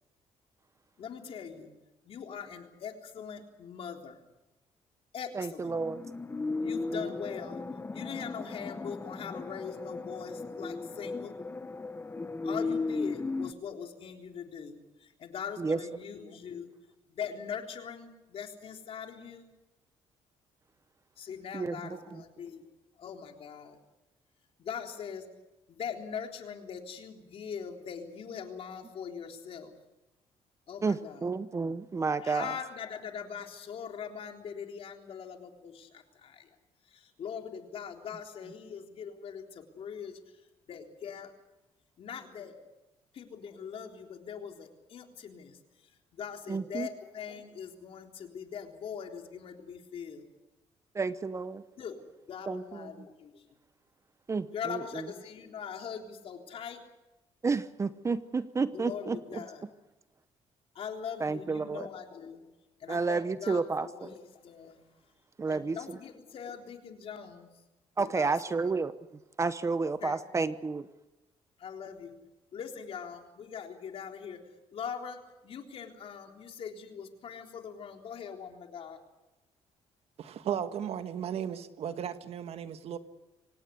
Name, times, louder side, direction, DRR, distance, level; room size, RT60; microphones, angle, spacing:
voice 1, 1.0-1.7 2.0-4.2 5.1-5.7 6.6-11.3 12.4-16.7 17.1-19.5 21.2-22.6 23.0-23.8 24.6-25.3 25.7-29.7 30.7-31.2 32.2-36.6 36.9-41.3 42.0-42.5 43.1-50.3 51.8-53.4 54.5-56.8 58.7-59.6 60.7-62.5 62.8-64.8 65.5-67.5 68.0-68.8 70.0-70.2 71.6-72.2 72.5-74.4 74.7-79.0, left 7 dB, 55° left, 3 dB, 3.7 m, -42 dB
voice 2, 5.3-6.0 6.9-7.0 15.6-15.8 21.5-22.0 30.8-32.5 46.5-46.9 50.9-51.6 52.5-52.9 54.3-55.1 57.4-59.4 61.2-61.9 62.9-64.1 65.4-66.0 68.0-68.9 69.4-70.9, right 4 dB, 25° right, 13 dB, 0.9 m, -31 dB
sound 1, 5.7-13.5, left 3 dB, 20° left, 1.2 m, -36 dB
voice 3, 80.2-83.0, right 9 dB, 65° right, 9 dB, 1.6 m, -35 dB
25.0 x 18.0 x 8.5 m, 1.0 s
cardioid pair, 110°, 11 cm